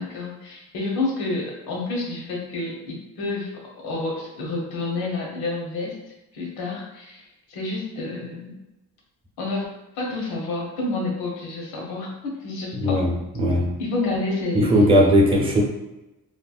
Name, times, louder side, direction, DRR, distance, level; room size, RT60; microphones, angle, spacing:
voice 1, 0.0-5.9 6.3-8.6 9.4-9.6 10.0-13.0 13.8-14.7, left 2 dB, 85° left, -1 dB, 0.9 m, -29 dB
voice 2, 12.7-13.1 13.4-13.7 14.5-15.6, equal, 15° right, -2 dB, 0.7 m, -18 dB
4.4 x 2.1 x 2.4 m, 1.0 s
cardioid pair, 105°, 37 cm